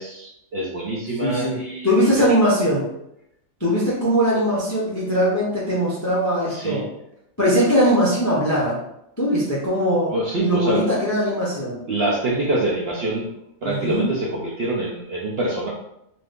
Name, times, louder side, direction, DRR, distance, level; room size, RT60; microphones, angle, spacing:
voice 1, 0.0-2.2 6.4-6.8 10.1-10.8 11.9-13.3 13.6-15.7, right 2 dB, 80° right, -4 dB, 0.5 m, -25 dB
voice 2, 1.2-1.6 1.8-2.8 3.6-6.9 7.4-8.8 9.2-10.1 10.4-11.8 13.6-14.1, equal, 30° left, -6 dB, 0.3 m, -20 dB
2.6 x 2.5 x 3.5 m, 0.80 s
omnidirectional pair, 1.7 m